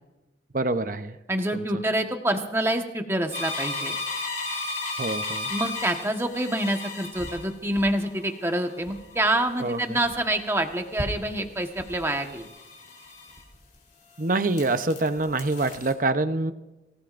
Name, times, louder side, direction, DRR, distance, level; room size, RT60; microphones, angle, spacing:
voice 1, 0.5-1.2 1.5-1.8 5.0-5.5 9.6-10.0 14.2-16.5, right 2 dB, 45° right, 10 dB, 0.8 m, -26 dB
voice 2, 1.3-3.9 5.5-12.5, right 1 dB, 15° right, 4 dB, 1.3 m, -27 dB
sound 1, 3.3-13.7 14.1-15.9, left 2 dB, 45° left, 3.9 m, -36 dB
26.0 x 17.0 x 2.6 m, 1.0 s
head